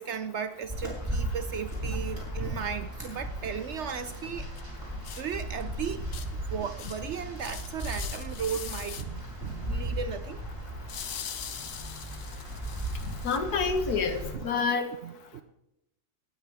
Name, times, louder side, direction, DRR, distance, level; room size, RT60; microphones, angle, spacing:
voice 1, 0.0-4.5 4.9-10.4 14.3-14.5 15.0-15.4, right 7 dB, 65° right, 0.7 m, -36 dB
sound 1, 0.7-14.3, right 1 dB, 15° right, 4.5 m, -36 dB
sound 2, 4.6-4.7 5.0-5.2 5.6-5.7 6.1-6.3 6.8-7.1 7.4-9.0 10.9-13.4, left 8 dB, 55° left, 1.1 m, -41 dB
voice 2, 13.2-14.9, left 5 dB, 80° left, 1.9 m, -28 dB
18.0 x 13.0 x 3.5 m
omnidirectional pair, 1.6 m